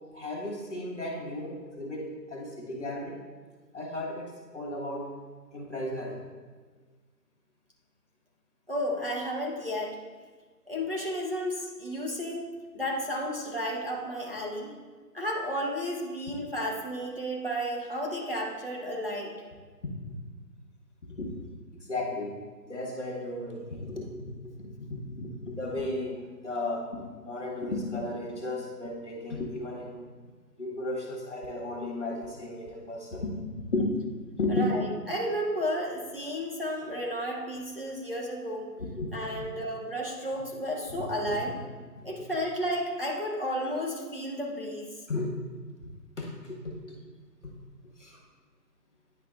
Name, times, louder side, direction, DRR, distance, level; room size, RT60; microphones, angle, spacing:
voice 1, 0.1-3.2 3.7-5.1 5.5-6.2 19.8-19.9 21.2-21.3 21.9-22.4 22.6-30.0 30.6-33.9 34.4-34.7 38.8-39.4 40.9-41.5 42.0-42.2 45.1-45.3 46.2-47.0 47.4-47.5 48.0-48.2, left 2 dB, 45° left, -1 dB, 1.5 m, -34 dB
voice 2, 8.7-10.0 10.7-12.5 12.7-14.7 15.1-19.3 34.5-38.7 39.1-41.5 42.0-44.9, equal, 35° right, -2 dB, 0.8 m, -32 dB
9.7 x 5.8 x 2.5 m, 1.4 s
figure-of-eight pair, 165°, 50 cm